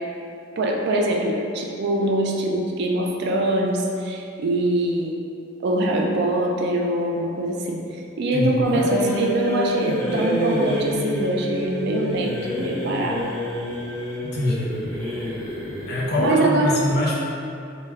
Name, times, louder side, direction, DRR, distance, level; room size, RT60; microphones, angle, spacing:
voice 1, 0.6-5.1 5.6-12.3 12.6-13.2 16.2-16.8, right 1 dB, 55° right, 0 dB, 0.3 m, -23 dB
sound 1, 8.6-16.3, left 1 dB, 10° left, 0.9 m, -28 dB
voice 2, 14.2-14.7 15.8-17.1, left 1 dB, 55° left, -5 dB, 0.5 m, -23 dB
2.2 x 2.1 x 3.4 m, 2.5 s
head